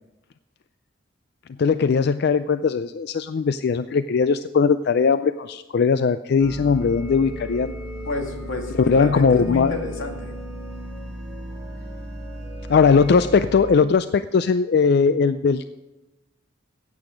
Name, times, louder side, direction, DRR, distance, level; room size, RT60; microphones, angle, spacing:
voice 1, 1.6-7.7 8.8-9.7 12.7-15.7, left 5 dB, 55° left, 12 dB, 0.4 m, -19 dB
sound 1, 6.4-13.8, equal, 5° right, 2.9 m, -35 dB
voice 2, 8.1-10.3, left 2 dB, 90° left, 3 dB, 2.2 m, -30 dB
15.5 x 8.6 x 5.1 m, 1.1 s
head